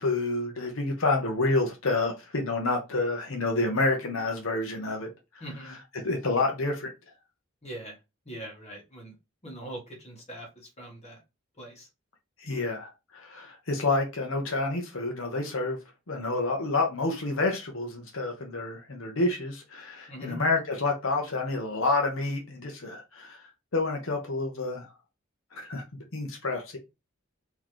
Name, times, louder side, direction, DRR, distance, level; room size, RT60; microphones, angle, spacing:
voice 1, 0.0-5.1 6.0-6.9 12.4-15.8 16.1-23.4 23.7-24.9 25.5-25.8 26.1-26.8, left 2 dB, 80° left, 0.9 m, -28 dB
voice 2, 5.4-5.7 7.6-7.9 8.2-9.1 9.4-11.2 11.6-11.9 20.1-20.4, right 1 dB, 30° left, 1.5 m, -42 dB
4.0 x 3.0 x 3.0 m
head